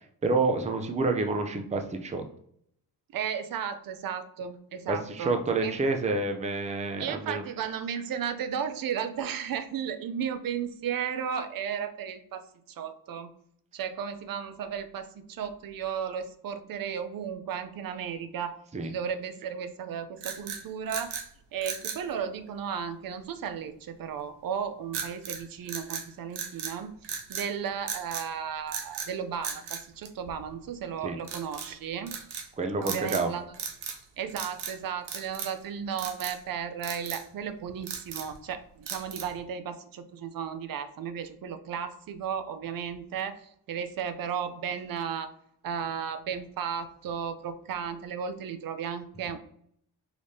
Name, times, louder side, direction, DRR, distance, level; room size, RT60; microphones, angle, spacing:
voice 1, 0.2-2.2 4.9-7.4 18.7-18.9 31.0-31.2 32.6-33.3, right 3 dB, 15° right, 5 dB, 0.5 m, -28 dB
voice 2, 3.1-5.8 7.0-13.3 13.7-18.6 18.8-21.2 21.5-32.1 32.8-33.5 34.2-45.3 45.6-49.4, right 7 dB, 55° right, 10 dB, 0.6 m, -34 dB
sound 1, 20.2-21.3 21.6-22.0 24.9-25.4 25.7-26.8 27.0-27.5 27.9-28.3 28.7-29.1 29.4-30.6 31.2-31.7 32.1-32.5 32.8-33.3 33.5-34.0 34.3-34.8 35.1-35.6 36.0-36.4 36.8-37.2 37.7-38.4 38.9-39.4, right 7 dB, 85° right, 0.9 m, -37 dB
4.9 x 3.4 x 2.7 m, 0.68 s
cardioid pair, 100°, 40 cm